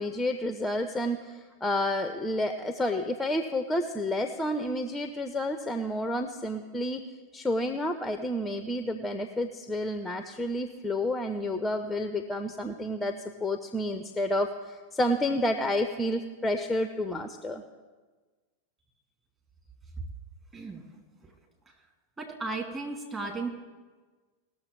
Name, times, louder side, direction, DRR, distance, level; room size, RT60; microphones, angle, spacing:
voice 1, 0.0-7.0 7.3-17.6, left 1 dB, 5° left, 7 dB, 0.6 m, -30 dB
voice 2, 20.5-21.3 21.7-21.8 22.2-23.5, right 3 dB, 20° right, -1 dB, 2.8 m, -36 dB
19.0 x 7.0 x 4.6 m, 1.4 s
figure-of-eight pair, 90°, 0 cm